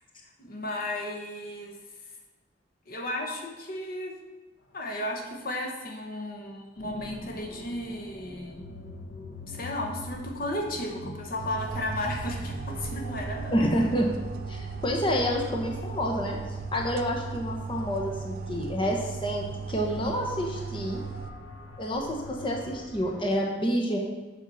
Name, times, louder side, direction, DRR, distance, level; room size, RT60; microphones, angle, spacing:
voice 1, 0.4-1.8 2.9-4.1 4.7-8.6 9.5-13.5 15.1-15.2, left 1 dB, 55° left, 1 dB, 1.1 m, -34 dB
sound 1, 6.8-23.2, left 1 dB, 70° left, 1.4 m, -43 dB
sound 2, 11.4-21.3, right 5 dB, 55° right, 0.5 m, -37 dB
voice 2, 13.5-14.1 14.5-16.4 16.7-21.0 21.8-24.0, equal, 30° left, 0 dB, 1.1 m, -28 dB
7.6 x 5.7 x 5.5 m, 1.2 s
head